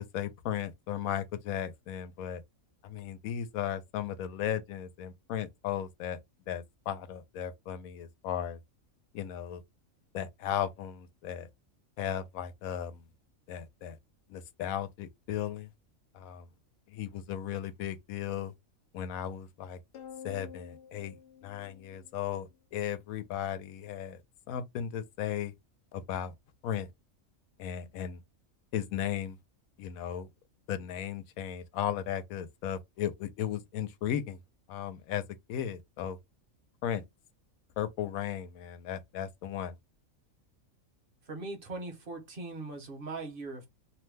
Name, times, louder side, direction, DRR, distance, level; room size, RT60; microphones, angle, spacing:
voice 1, 0.0-2.4 2.8-6.2 6.5-8.6 9.1-9.6 10.1-11.5 12.0-13.0 13.5-14.0 14.3-15.7 16.1-16.5 16.9-18.5 18.9-19.8 20.2-21.2 21.4-24.2 24.5-25.5 25.9-26.3 26.6-26.9 27.6-28.2 28.7-29.4 29.8-30.3 30.7-34.4 34.7-35.2 35.5-36.2 36.8-37.0 37.8-39.7, left 10 dB, 85° left, 1.0 m, -36 dB
sound 1, 19.9-22.5, left 8 dB, 65° left, 0.5 m, -49 dB
voice 2, 41.3-43.7, right 3 dB, 45° right, 1.0 m, -40 dB
2.8 x 2.1 x 3.2 m
omnidirectional pair, 1.4 m